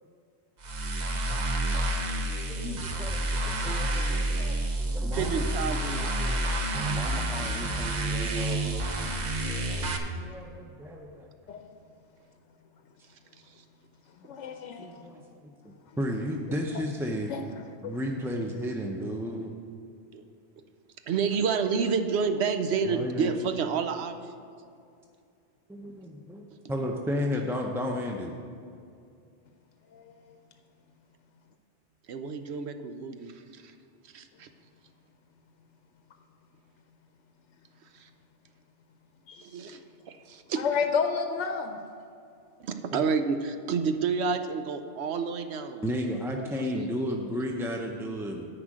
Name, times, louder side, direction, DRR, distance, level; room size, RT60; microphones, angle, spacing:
sound 1, 0.6-10.0, right 1 dB, 45° right, 0.8 m, -29 dB
voice 1, 2.5-5.5 6.8-8.7 9.8-11.3 14.8-17.3 17.8-19.5 22.9-23.3 25.7-28.4 42.9-43.1 45.8-48.5, equal, 5° right, 1 dB, 0.4 m, -34 dB
voice 2, 5.1-6.4 20.1-20.2 21.1-24.2 32.1-33.7 34.1-34.5 38.0-38.1 39.4-39.8 40.1-40.6 42.6-45.9 46.7-46.9, right 5 dB, 75° right, 8 dB, 0.9 m, -29 dB
voice 3, 14.2-15.1 17.3-17.4 17.8-17.9 29.9-30.3 39.3-39.4 40.6-41.8, left 5 dB, 90° left, 6 dB, 0.9 m, -31 dB
9.8 x 5.0 x 7.5 m, 2.4 s
omnidirectional pair, 1.2 m